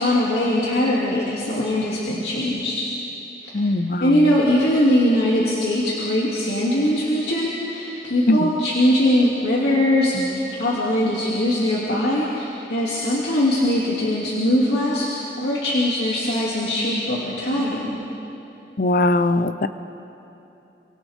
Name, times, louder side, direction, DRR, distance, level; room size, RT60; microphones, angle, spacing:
voice 1, 0.0-2.8 3.5-3.6 4.0-18.0, left 1 dB, 70° left, -6 dB, 2.7 m, -21 dB
voice 2, 3.5-4.3 8.3-8.5 18.8-19.7, left 2 dB, 50° left, 11 dB, 0.7 m, -20 dB
29.5 x 24.0 x 3.6 m, 3.0 s
head